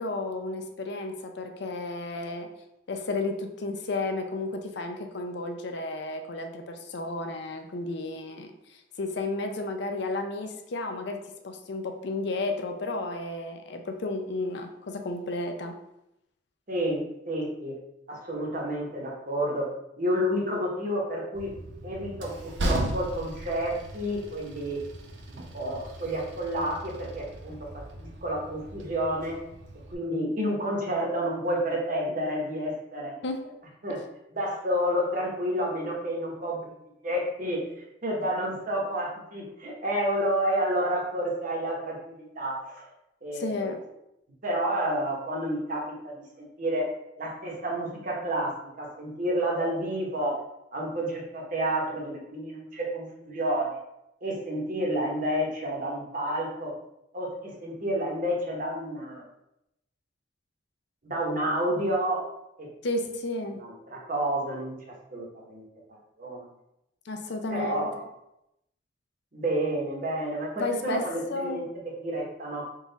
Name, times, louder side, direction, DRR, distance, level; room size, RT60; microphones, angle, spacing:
voice 1, 0.0-2.5 2.9-15.8 33.2-33.5 43.3-43.9 62.8-63.6 67.1-67.9 70.6-71.7, left 2 dB, 60° left, 5 dB, 0.5 m, -33 dB
voice 2, 16.7-17.8 18.1-19.7 20.0-21.5 21.8-24.8 25.3-29.4 29.9-33.1 33.8-34.0 34.3-36.6 37.0-37.6 38.0-42.9 43.2-43.7 44.4-46.9 47.2-50.4 50.7-53.7 54.2-56.7 57.1-59.2 61.0-62.3 62.6-62.7 63.6-64.7 65.1-66.4 67.5-68.1 69.3-72.6, right 1 dB, 45° right, -2 dB, 1.0 m, -30 dB
Train, 21.3-29.9, right 1 dB, 65° right, 0.6 m, -37 dB
3.9 x 2.4 x 3.9 m, 0.84 s
head